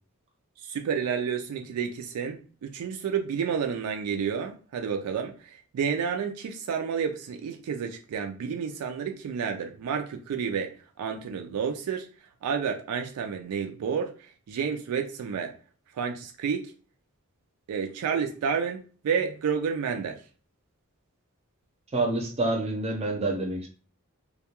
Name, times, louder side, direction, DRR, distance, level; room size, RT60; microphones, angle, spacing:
voice 1, 0.6-12.1 12.4-14.1 14.5-15.5 15.9-16.7 17.7-20.2, right 6 dB, 90° right, 0.3 m, -30 dB
voice 2, 21.9-23.7, right 2 dB, 30° right, 0.5 m, -27 dB
2.2 x 2.2 x 2.8 m
head